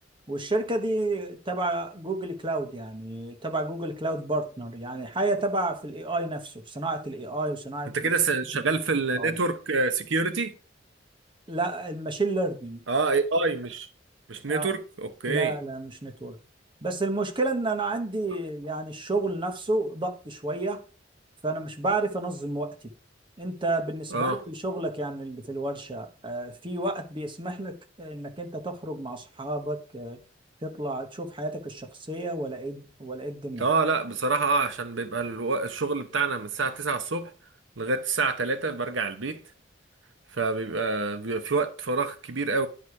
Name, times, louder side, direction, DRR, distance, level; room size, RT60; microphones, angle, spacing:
voice 1, 0.3-7.9 8.5-8.6 9.2-9.3 11.5-12.8 14.5-14.7 15.3-16.4 16.8-20.8 21.4-22.7 23.4-30.2 30.6-33.7, right 2 dB, 25° right, 1.0 m, -31 dB
voice 2, 7.9-10.5 12.9-13.9 14.3-15.5 24.1-24.4 33.6-37.3 37.8-39.4 40.3-42.7, right 3 dB, 85° right, 0.9 m, -27 dB
10.0 x 4.9 x 4.7 m
head